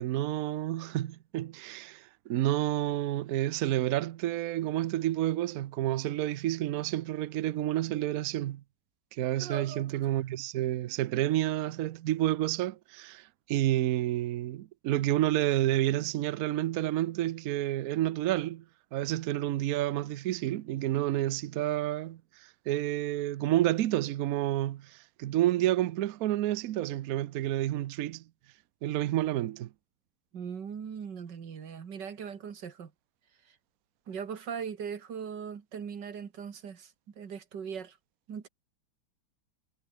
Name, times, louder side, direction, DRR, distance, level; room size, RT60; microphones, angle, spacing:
voice 1, 0.0-8.6 9.1-18.6 18.9-28.2 28.8-29.7, right 14 dB, 85° right, 0.7 m, -30 dB
voice 2, 9.4-9.9 30.3-32.9 34.1-38.0 38.3-38.5, right 7 dB, 55° right, 2.4 m, -39 dB
omnidirectional pair, 2.3 m